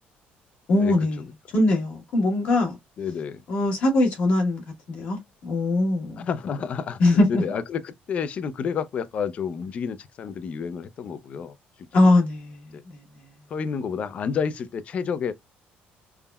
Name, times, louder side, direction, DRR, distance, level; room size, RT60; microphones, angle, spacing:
voice 1, 0.7-1.2 1.5-2.8 3.5-6.3 7.0-7.4 11.9-13.0, left 2 dB, 55° left, 1.2 m, -22 dB
voice 2, 3.0-3.4 6.2-11.5 12.0-12.1 12.7-12.8 13.5-15.3, left 6 dB, 35° left, 0.3 m, -30 dB
3.4 x 2.1 x 2.2 m
cardioid pair, 155°, 4 cm